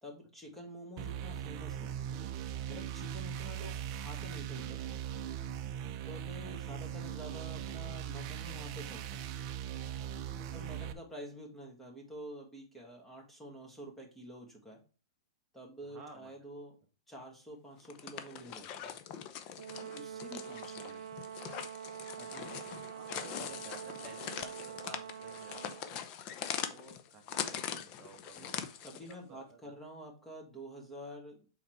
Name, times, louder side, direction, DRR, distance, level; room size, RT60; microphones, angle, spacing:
voice 1, 0.0-2.3 2.7-4.8 6.0-9.3 10.3-14.8 15.5-16.8 17.1-19.0 19.8-21.1 22.2-22.6 28.4-31.4, equal, 5° left, -1 dB, 2.0 m, -49 dB
sound 1, 1.0-10.9, right 9 dB, 40° right, 0.6 m, -40 dB
voice 2, 15.8-16.3 20.1-20.2 22.8-28.6 29.0-29.7, right 4 dB, 25° right, 2 dB, 1.3 m, -55 dB
sound 2, 17.8-29.1, left 9 dB, 35° left, 0.7 m, -42 dB
Brass instrument, 19.6-26.0, right 8 dB, 85° right, 0.3 m, -45 dB
5.8 x 4.0 x 4.6 m, 0.37 s
hypercardioid pair, 145°, 3 cm